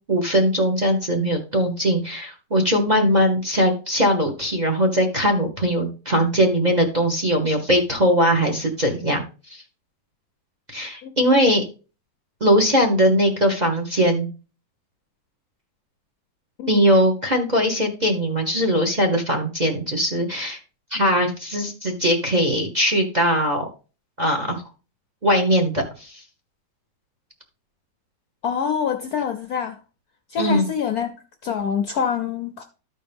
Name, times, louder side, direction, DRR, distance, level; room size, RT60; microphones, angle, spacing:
voice 1, 0.1-9.2 9.5-9.6 10.7-11.6 12.4-14.3 16.7-20.6 20.9-23.7 24.2-24.6 25.2-26.2 30.4-30.6, equal, 25° right, 1.0 m, -20 dB
voice 2, 28.4-29.8 30.3-32.6, left 7 dB, 65° left, 0.9 m, -26 dB
13.0 x 4.5 x 3.5 m
omnidirectional pair, 2.2 m